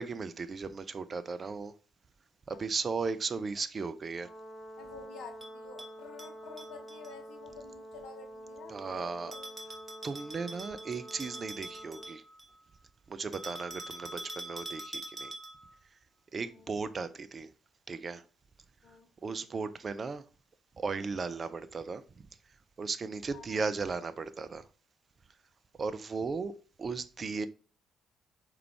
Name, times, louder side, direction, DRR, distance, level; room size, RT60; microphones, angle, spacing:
voice 1, 0.0-1.7 2.5-4.3 8.7-9.3 10.0-12.2 13.1-15.3 16.3-17.5 17.9-18.2 19.2-20.2 20.8-22.3 22.8-24.7 25.8-26.5 26.8-27.5, right 4 dB, 40° right, 0.4 m, -36 dB
Brass instrument, 4.2-12.2, right 1 dB, ahead, 2.2 m, -48 dB
voice 2, 4.8-9.5 14.1-14.4 16.5-16.7 18.8-19.1 23.3-23.7, left 5 dB, 60° left, 0.8 m, -50 dB
Bell, 5.4-7.1 9.3-12.6 13.3-15.7, right 1 dB, 20° right, 1.3 m, -44 dB
4.9 x 3.1 x 3.4 m
figure-of-eight pair, 45°, 0 cm